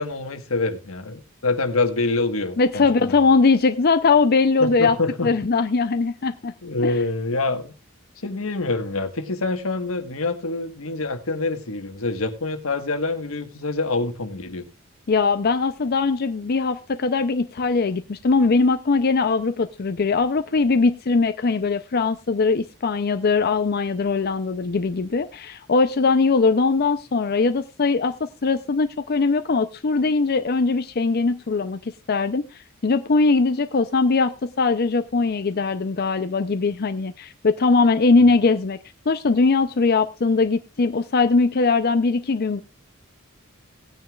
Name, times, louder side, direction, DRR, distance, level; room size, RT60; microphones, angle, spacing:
voice 1, 0.0-3.2 4.6-5.3 6.6-7.7 8.2-14.7, left 3 dB, 85° left, 1.4 m, -26 dB
voice 2, 2.6-5.0 5.2-6.5 6.8-6.9 15.1-38.8 39.1-42.6, left 4 dB, 50° left, 0.5 m, -21 dB
18.0 x 9.4 x 2.4 m
head